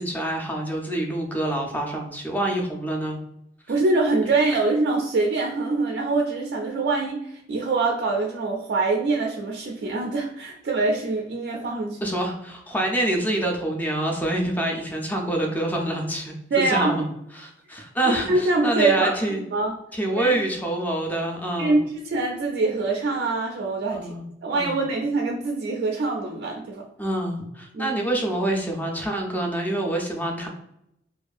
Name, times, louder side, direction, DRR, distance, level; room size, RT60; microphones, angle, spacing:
voice 1, 0.0-3.2 12.0-16.3 16.7-17.0 17.3-19.4 19.9-21.8 23.9-24.2 24.5-24.8 27.0-30.5, right 1 dB, 10° left, 1 dB, 0.4 m, -26 dB
voice 2, 3.7-12.0 16.5-17.1 18.0-19.2 19.5-19.8 20.2-20.4 21.6-24.1 24.4-26.8 27.7-28.0, right 3 dB, 65° right, 0 dB, 0.3 m, -24 dB
2.5 x 2.3 x 2.4 m, 0.80 s
head